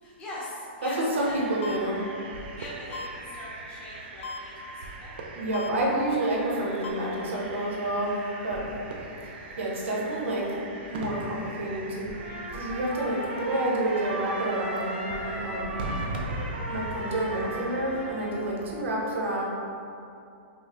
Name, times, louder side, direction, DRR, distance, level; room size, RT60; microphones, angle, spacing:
voice 1, 0.0-1.4 2.6-5.1, left 1 dB, 15° left, -7 dB, 0.8 m, -41 dB
voice 2, 0.8-2.0 5.3-8.1 8.4-8.7 9.6-10.6 10.9-12.1 12.5-15.8 16.7-19.4, right 1 dB, 80° right, -4 dB, 1.0 m, -29 dB
sound 1, 1.2-18.9, right 2 dB, 50° right, 0.5 m, -40 dB
sound 2, 1.6-1.8 2.9-3.1 4.2-4.4 5.5-5.7 6.8-6.9, left 4 dB, 80° left, 0.4 m, -35 dB
Trumpet, 12.1-18.7, right 1 dB, 25° right, 1.2 m, -37 dB
5.3 x 2.1 x 3.0 m, 2.6 s
hypercardioid pair, 160°, 7 cm